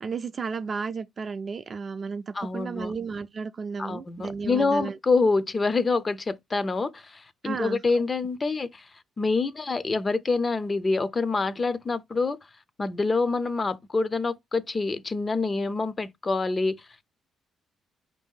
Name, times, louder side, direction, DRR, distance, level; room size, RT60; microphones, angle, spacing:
voice 1, 0.0-5.0 7.4-7.8, right 5 dB, 40° right, 0.4 m, -33 dB
voice 2, 2.3-2.9 3.8-8.8 9.2-12.4 12.8-16.8, left 3 dB, 30° left, 0.5 m, -26 dB
5.0 x 2.7 x 3.6 m
cardioid pair, 90°, 0 cm